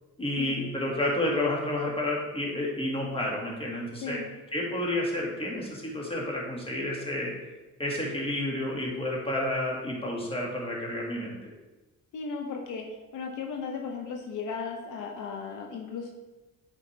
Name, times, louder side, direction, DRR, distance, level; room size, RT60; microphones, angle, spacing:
voice 1, 0.2-4.2 4.5-7.3 7.8-11.5, left 1 dB, 20° left, -2 dB, 2.0 m, -30 dB
voice 2, 4.0-4.3 12.1-12.8 13.1-16.1, left 5 dB, 80° left, 2 dB, 1.0 m, -36 dB
8.3 x 4.8 x 3.3 m, 1.1 s
cardioid pair, 90°, 30 cm